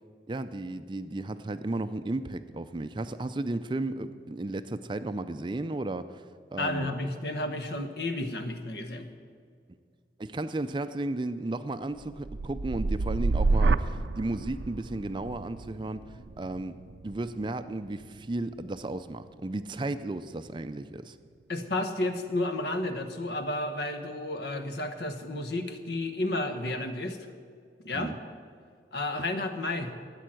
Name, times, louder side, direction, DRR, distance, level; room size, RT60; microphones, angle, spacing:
voice 1, 0.3-7.0 10.2-16.8 17.0-21.2 27.9-28.2, right 2 dB, 25° right, 11 dB, 0.4 m, -34 dB
voice 2, 6.6-9.1 21.5-27.2 27.8-28.1 28.9-29.9, left 2 dB, 70° left, 8 dB, 1.1 m, -32 dB
sound 1, 12.0-20.0 20.5-21.0, right 3 dB, 80° right, 0.5 m, -31 dB
13.0 x 9.1 x 7.7 m, 2.2 s
head